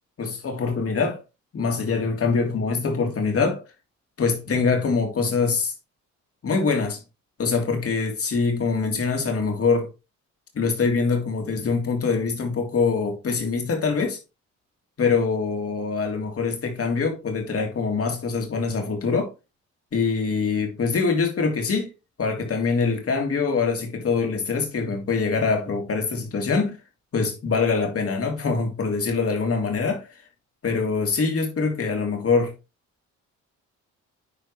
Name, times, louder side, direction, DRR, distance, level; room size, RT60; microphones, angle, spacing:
voice 1, 0.2-1.2 1.5-3.6 4.2-5.7 6.4-7.0 7.4-9.9 10.5-14.2 15.0-19.3 19.9-21.9 22.2-26.8 27.1-30.1 30.6-32.6, left 4 dB, 50° left, 3.2 m, -24 dB
10.0 x 4.6 x 3.2 m
cardioid pair, 90°, 30 cm